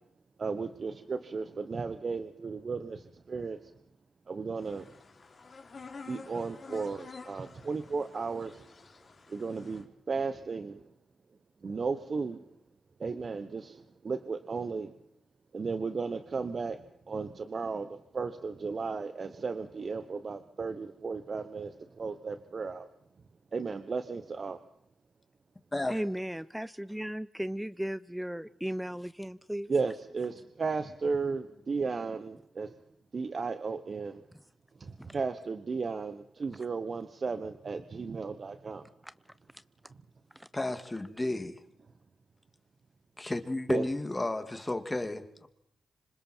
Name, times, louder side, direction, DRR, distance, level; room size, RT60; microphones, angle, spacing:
voice 1, 0.4-3.6 4.3-4.9 6.1-8.6 9.3-10.8 11.6-12.4 13.0-14.9 15.5-16.8 17.1-17.9 18.1-22.9 23.5-24.6 29.7-32.7 33.1-34.2 34.8-38.8 43.7-43.8, right 4 dB, 55° right, 1.0 m, -34 dB
sound 1, 4.6-9.8, left 4 dB, 55° left, 3.2 m, -50 dB
voice 2, 25.9-29.7 34.3-34.4 35.0-35.2 39.0-39.1 40.3-40.5, equal, 5° right, 0.7 m, -36 dB
voice 3, 40.5-41.6 43.2-45.5, left 2 dB, 20° left, 2.4 m, -33 dB
26.0 x 26.0 x 4.5 m
supercardioid pair, 45°, 0 cm